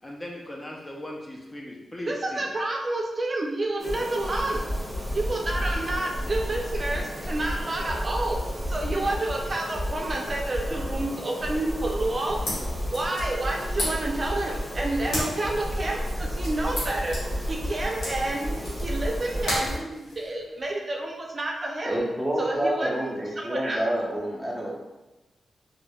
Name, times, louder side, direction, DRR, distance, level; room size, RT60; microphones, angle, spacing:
voice 1, 0.0-2.5, left 1 dB, 25° left, -2 dB, 0.5 m, -38 dB
voice 2, 2.1-4.7 5.1-8.4 8.7-12.4 12.9-17.2 17.4-22.0 22.4-23.9, right 2 dB, 40° right, 0 dB, 0.4 m, -29 dB
sound 1, 3.8-19.8, equal, 20° right, 1.4 m, -32 dB
sound 2, 12.1-20.7, left 1 dB, 90° left, 1.2 m, -36 dB
voice 3, 21.8-24.7, right 1 dB, 5° left, -4 dB, 0.8 m, -28 dB
3.2 x 2.4 x 2.2 m, 1.1 s
cardioid pair, 55°, 0 cm